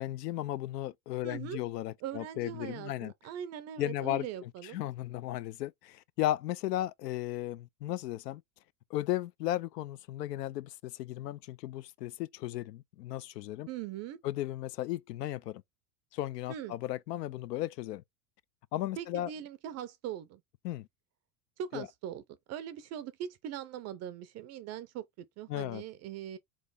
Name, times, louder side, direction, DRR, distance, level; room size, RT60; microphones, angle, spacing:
voice 1, 0.0-3.1 3.8-8.4 8.9-13.7 14.2-15.6 16.1-18.0 18.7-19.3 20.6-20.9 21.7-21.9 25.5-25.8, left 14 dB, 80° left, 0.6 m, -35 dB
voice 2, 1.2-1.6 2.0-4.8 13.7-14.2 16.5-16.7 19.0-20.4 21.6-22.2 22.5-26.4, right 10 dB, 35° right, 0.5 m, -41 dB
3.6 x 3.2 x 4.0 m
hypercardioid pair, 100°, 48 cm